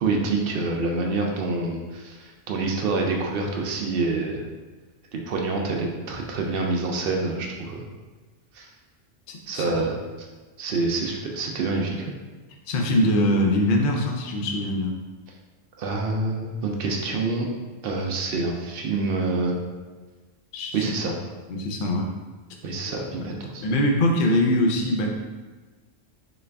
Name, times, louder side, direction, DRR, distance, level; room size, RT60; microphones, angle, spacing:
voice 1, 0.0-4.4 5.1-7.8 8.5-8.7 9.5-10.3 10.6-12.1 15.8-17.5 17.8-19.5 20.7-21.1 22.6-23.7, right 3 dB, 60° right, 0 dB, 0.6 m, -27 dB
voice 2, 9.3-9.8 12.7-14.9 20.5-20.9 21.5-22.1 22.9-23.0 23.2-25.1, left 1 dB, 60° left, 1 dB, 0.6 m, -23 dB
3.9 x 2.4 x 3.3 m, 1.3 s
omnidirectional pair, 1.3 m